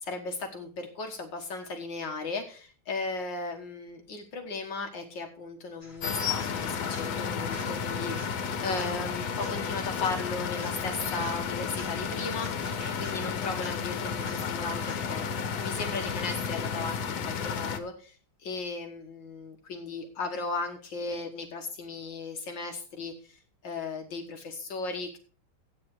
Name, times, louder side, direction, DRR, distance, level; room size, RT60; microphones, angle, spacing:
voice 1, 0.0-25.2, left 3 dB, 70° left, 3 dB, 2.1 m, -36 dB
sound 1, 5.8-15.4 23.4-23.5, left 1 dB, 40° left, 3.0 m, -52 dB
sound 2, 6.0-17.8, left 6 dB, 85° left, 2.0 m, -32 dB
sound 3, 7.5-9.4 9.8-10.0 12.6-14.5 16.2-16.3 20.7-20.8, right 1 dB, 55° right, 3.8 m, -51 dB
13.0 x 8.9 x 4.8 m, 0.40 s
omnidirectional pair, 2.1 m